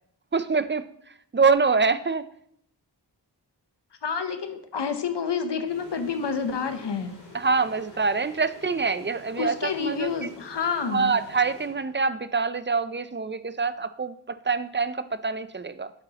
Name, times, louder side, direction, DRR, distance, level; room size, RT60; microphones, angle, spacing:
voice 1, 0.3-2.3 7.3-10.1 10.8-15.9, right 4 dB, 30° right, 13 dB, 0.4 m, -25 dB
voice 2, 4.0-7.1 9.4-11.1, left 6 dB, 75° left, 8 dB, 0.8 m, -29 dB
sound 1, 5.7-12.3, left 2 dB, 50° left, 2.6 m, -48 dB
8.1 x 7.8 x 2.9 m, 0.69 s
wide cardioid pair, 45°, 42 cm